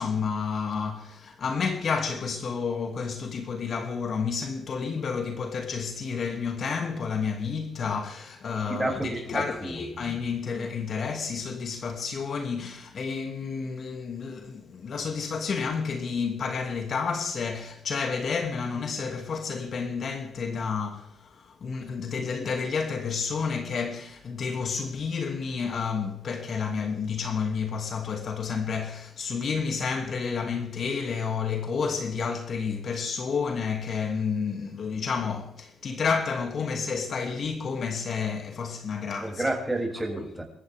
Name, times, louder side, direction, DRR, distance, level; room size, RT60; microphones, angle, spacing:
voice 1, 0.0-39.4, left 5 dB, 50° left, 2.6 m, -30 dB
voice 2, 8.7-9.8 39.2-40.4, right 2 dB, 10° right, 7.2 m, -30 dB
27.5 x 14.0 x 3.6 m
cardioid pair, 90°, 0 cm